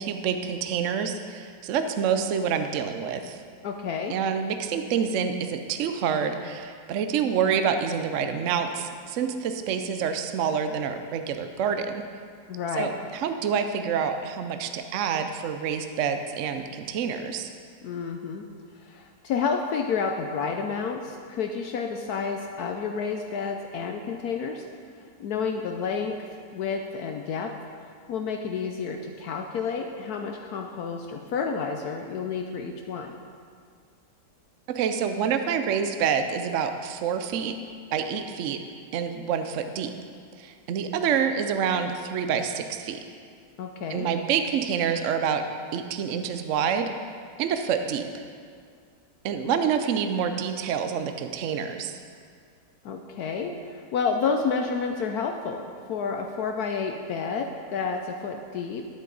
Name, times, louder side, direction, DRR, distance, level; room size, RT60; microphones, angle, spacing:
voice 1, 0.0-3.4 4.1-12.0 12.7-17.5 34.7-37.5 37.9-38.6 38.9-39.9 40.4-43.0 43.9-45.4 45.7-46.9 47.4-48.2 49.2-51.9, right 7 dB, 65° right, 7 dB, 0.8 m, -27 dB
voice 2, 3.6-4.1 12.5-12.9 17.8-18.4 18.8-24.6 25.2-27.5 28.1-33.2 43.6-44.1 52.8-58.8, left 5 dB, 70° left, 3 dB, 1.1 m, -30 dB
12.0 x 8.3 x 4.0 m, 2.1 s
omnidirectional pair, 1.9 m